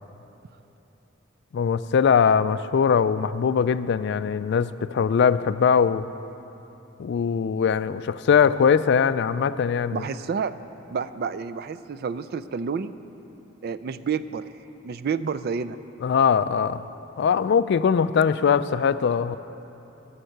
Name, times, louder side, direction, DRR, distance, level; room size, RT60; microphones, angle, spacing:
voice 1, 1.5-6.0 7.0-10.0 16.0-16.9 17.2-19.4, left 6 dB, 55° left, 14 dB, 0.3 m, -21 dB
voice 2, 9.9-10.5 10.9-12.9 13.6-14.4 14.8-15.8, right 6 dB, 50° right, 13 dB, 0.4 m, -29 dB
14.5 x 7.3 x 6.6 m, 3.0 s
head